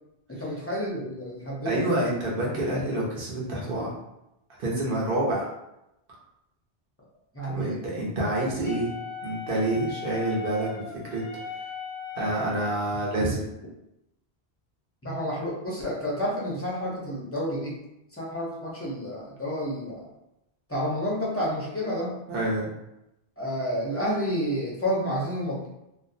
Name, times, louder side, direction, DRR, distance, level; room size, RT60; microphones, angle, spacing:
voice 1, 0.3-1.9 7.3-7.8 13.2-13.3 15.0-17.8 18.1-20.1 20.7-22.2 23.4-25.7, equal, 25° left, -5 dB, 0.3 m, -30 dB
voice 2, 1.6-3.9 4.6-5.5 7.5-8.9 9.2-10.8 11.1-11.2 12.1-13.4 22.3-22.7, right 1 dB, 60° right, -5 dB, 0.9 m, -27 dB
Wind instrument woodwind instrument, 8.6-12.8, left 6 dB, 85° left, 0.9 m, -38 dB
2.4 x 2.0 x 2.6 m, 0.88 s
omnidirectional pair, 1.1 m